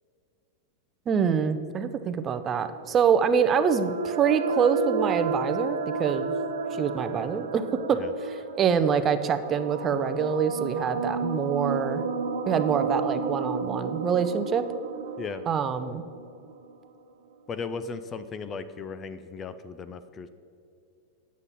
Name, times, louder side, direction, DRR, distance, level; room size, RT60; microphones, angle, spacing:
voice 1, 1.1-6.3 6.7-12.0 12.5-14.6 15.5-16.0, right 7 dB, 30° right, 10 dB, 0.5 m, -25 dB
sound 1, 2.7-16.8, right 4 dB, 80° right, 0.7 m, -32 dB
voice 2, 17.5-20.3, left 5 dB, 25° left, 12 dB, 0.4 m, -36 dB
8.4 x 7.1 x 4.1 m, 2.5 s
hypercardioid pair, 115°, 0 cm